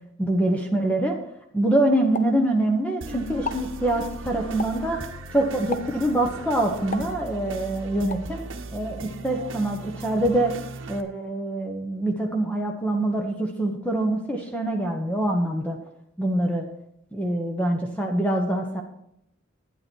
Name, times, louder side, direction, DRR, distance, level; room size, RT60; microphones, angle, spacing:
voice 1, 0.2-1.1 1.5-5.0 5.3-8.4 8.7-10.5 10.9-15.8 16.2-16.6 17.1-18.8, right 1 dB, 5° left, 2 dB, 1.0 m, -24 dB
Explosion, 2.1-3.0 3.3-3.7 4.6-5.0 5.7-6.1 6.9-7.6 8.1-8.3, left 4 dB, 35° left, 0.7 m, -35 dB
sound 1, 3.0-11.0, right 3 dB, 65° right, 1.1 m, -38 dB
12.0 x 9.6 x 4.5 m, 0.79 s
head